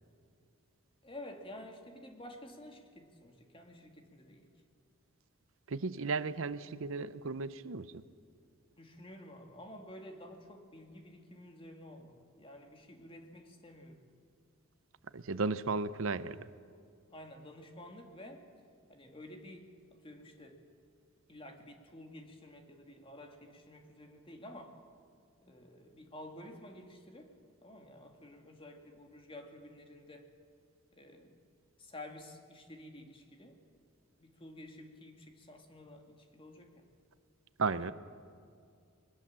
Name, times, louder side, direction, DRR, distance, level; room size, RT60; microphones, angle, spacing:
voice 1, 1.0-4.5 8.8-14.0 17.1-18.5 18.9-20.6 21.3-24.8 25.4-27.3 27.6-30.3 30.9-31.4 31.8-33.6 34.2-36.8 37.6-37.9, left 1 dB, 25° left, 4 dB, 2.1 m, -51 dB
voice 2, 5.7-7.9 15.1-16.5 37.6-37.9, right 4 dB, 70° right, 14 dB, 0.7 m, -34 dB
22.0 x 20.5 x 7.5 m, 2.3 s
head